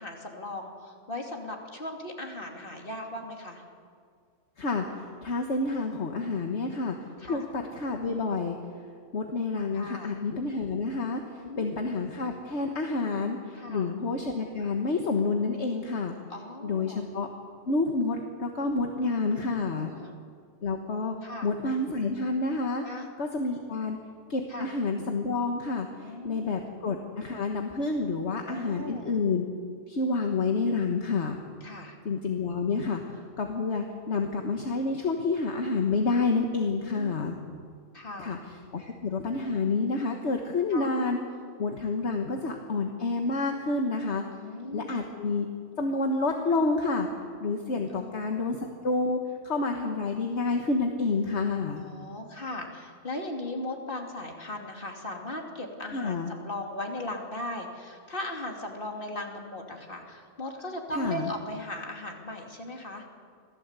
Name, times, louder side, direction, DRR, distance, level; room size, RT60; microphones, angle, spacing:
voice 1, 0.0-3.6 7.2-7.4 9.7-10.1 11.4-11.9 13.5-13.9 16.3-17.0 19.7-20.1 21.2-21.5 22.8-23.1 24.5-24.7 26.0-26.5 28.4-29.1 31.6-32.0 36.8-37.2 37.9-38.4 40.7-40.9 44.3-44.9 47.9-48.3 51.7-63.0, left 1 dB, 45° left, 2 dB, 3.1 m, -38 dB
voice 2, 4.6-7.0 7.3-8.6 9.1-16.1 16.6-17.3 17.7-19.9 20.6-21.2 21.4-22.8 23.2-24.0 24.3-29.5 29.9-31.4 32.1-37.4 38.2-38.4 38.7-41.2 41.6-44.2 44.7-45.5 45.8-47.1 47.4-48.6 48.8-49.2 49.4-51.8 55.9-56.3 60.9-61.3, left 3 dB, 65° left, 3 dB, 1.7 m, -29 dB
26.5 x 17.0 x 8.2 m, 2.1 s
omnidirectional pair, 1.3 m